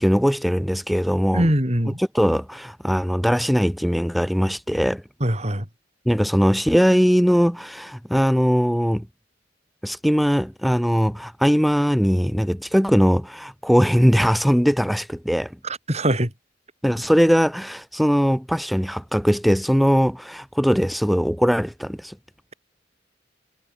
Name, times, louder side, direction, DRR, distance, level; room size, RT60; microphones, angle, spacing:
voice 1, 0.0-1.5 2.0-5.0 6.1-9.0 9.8-15.5 16.8-22.1, equal, ahead, 2.9 m, -20 dB
voice 2, 1.3-2.0 5.2-5.6 15.6-16.3, right 1 dB, 35° right, 7.3 m, -22 dB
head